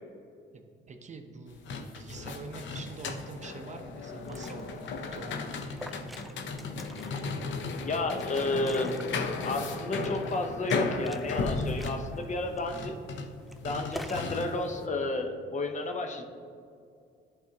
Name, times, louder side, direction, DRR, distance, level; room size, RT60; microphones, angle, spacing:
voice 1, 0.5-1.7 1.9-5.6, right 3 dB, 35° right, 5 dB, 0.6 m, -45 dB
sound 1, 1.5-14.8, left 4 dB, 70° left, 0.6 m, -35 dB
Liquid, 4.1-14.4, right 1 dB, ahead, 0.3 m, -48 dB
voice 2, 7.8-8.9 9.4-13.0 13.6-16.2, left 2 dB, 35° left, 4 dB, 0.8 m, -31 dB
10.5 x 4.2 x 2.8 m, 2.3 s
cardioid pair, 90°, 20 cm